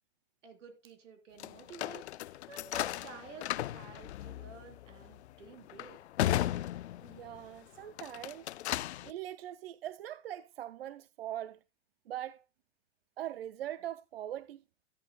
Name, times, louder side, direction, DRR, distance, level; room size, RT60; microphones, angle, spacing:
voice 1, 0.4-6.0, right 4 dB, 70° right, 4.2 m, -51 dB
sound 1, 1.4-7.4 7.9-9.1, left 13 dB, 60° left, 0.5 m, -36 dB
voice 2, 7.0-8.5 9.0-11.6 12.1-12.4 13.2-14.6, right 12 dB, 50° right, 0.5 m, -41 dB
13.0 x 11.0 x 2.3 m
supercardioid pair, 180°, 38 cm